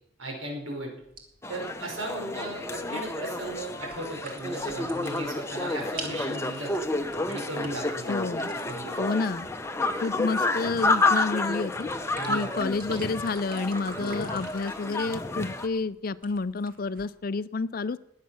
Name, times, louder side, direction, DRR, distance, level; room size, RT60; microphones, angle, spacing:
voice 1, 0.2-0.9 1.5-6.7 7.3-8.1 8.6-9.0 12.2-12.5, right 1 dB, 80° right, 1 dB, 5.2 m, -36 dB
sound 1, 1.0-17.0, right 3 dB, 45° right, 2.4 m, -48 dB
sound 2, 1.4-15.7, left 2 dB, 15° left, 0.8 m, -30 dB
voice 2, 8.1-8.5 9.0-9.5 10.0-11.9 12.3-18.0, left 4 dB, 45° left, 16 dB, 0.5 m, -29 dB
20.5 x 8.4 x 6.2 m, 0.79 s
head